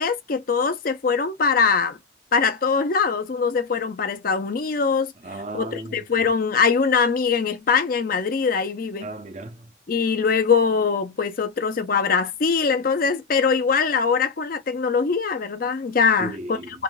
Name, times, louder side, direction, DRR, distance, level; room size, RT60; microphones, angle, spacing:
voice 1, 0.0-2.0 2.3-5.1 5.5-9.1 9.9-16.8, left 5 dB, 45° left, 0.4 m, -22 dB
voice 2, 5.2-6.0 9.0-9.7 16.2-16.8, right 2 dB, 35° right, 0.5 m, -35 dB
3.3 x 2.5 x 2.2 m
head